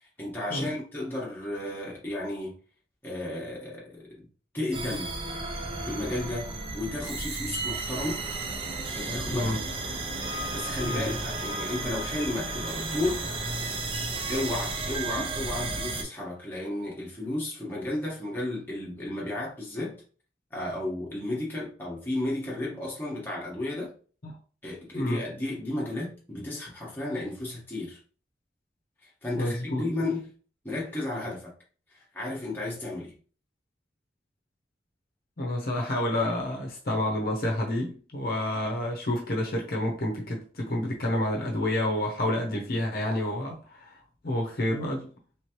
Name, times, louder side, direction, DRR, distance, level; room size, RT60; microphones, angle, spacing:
voice 1, 0.0-2.5 3.0-4.3 4.5-5.1 5.8-6.5 6.7-8.2 8.9-9.5 10.3-13.2 14.3-20.0 20.5-23.9 24.6-28.0 29.0-30.3 30.6-31.5 31.9-33.1, left 1 dB, 10° left, 1.3 m, -33 dB
sound 1, 4.7-16.0, right 3 dB, 30° right, 0.5 m, -33 dB
voice 2, 10.8-11.1 15.2-15.3 24.2-24.4 24.9-25.2 29.4-29.9 35.4-44.0 44.2-45.1, left 1 dB, 55° left, 0.8 m, -29 dB
3.4 x 3.1 x 3.0 m
head